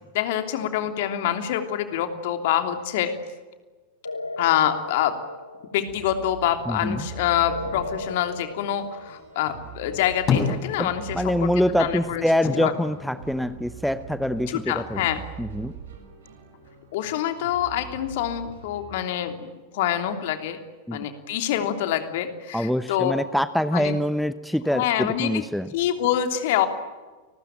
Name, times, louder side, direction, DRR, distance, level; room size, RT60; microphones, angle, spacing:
voice 1, 0.0-3.1 4.4-5.2 5.7-11.5 11.8-12.3 12.5-12.7 14.5-15.2 16.9-19.5 19.7-20.6 20.9-23.1 23.7-24.0 24.7-25.4 25.7-26.7, left 11 dB, 50° left, 7 dB, 3.1 m, -26 dB
sound 1, 2.1-2.7 4.1-6.1 7.5-9.6, left 2 dB, 80° left, 1.6 m, -37 dB
sound 2, 5.9-18.9, right 7 dB, 65° right, 6.8 m, -42 dB
voice 2, 6.7-7.1 10.8-10.9 11.1-15.0 15.4-15.7 20.9-21.0 22.5-25.7, equal, ahead, 13 dB, 0.9 m, -25 dB
sound 3, 9.8-11.3 11.6-14.0 14.4-15.3, left 6 dB, 30° left, 7.8 m, -29 dB
30.0 x 20.5 x 9.1 m, 1.3 s
figure-of-eight pair, 90°, 0 cm